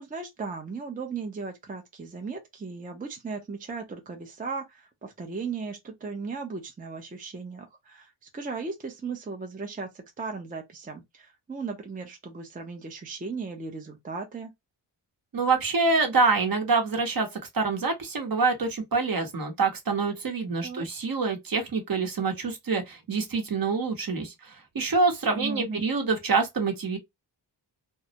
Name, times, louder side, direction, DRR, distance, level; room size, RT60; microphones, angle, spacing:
voice 1, 0.0-14.5 20.6-20.9 25.3-25.8, right 4 dB, 20° right, 0.5 m, -36 dB
voice 2, 15.3-17.3 17.5-27.0, right 4 dB, 50° right, 0.9 m, -26 dB
2.2 x 2.0 x 2.7 m
cardioid pair, 75°, 44 cm